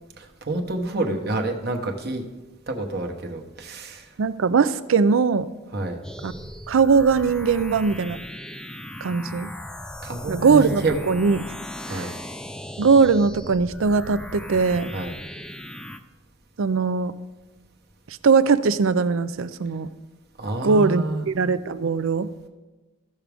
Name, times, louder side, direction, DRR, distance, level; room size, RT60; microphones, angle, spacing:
voice 1, 0.2-2.2 2.7-4.1 5.7-6.0 10.0-11.0 11.9-12.1 14.9-15.1 20.4-21.2, right 2 dB, 50° right, 3 dB, 1.0 m, -28 dB
voice 2, 4.2-5.5 6.2-6.3 6.7-8.2 9.0-9.5 10.3-11.4 11.9-12.1 12.8-14.9 16.6-17.1 18.1-19.9 20.6-22.3, right 5 dB, 75° right, 13 dB, 0.4 m, -20 dB
sound 1, 6.0-16.0, left 1 dB, 5° left, 0.4 m, -37 dB
15.0 x 6.0 x 3.4 m, 1.2 s
head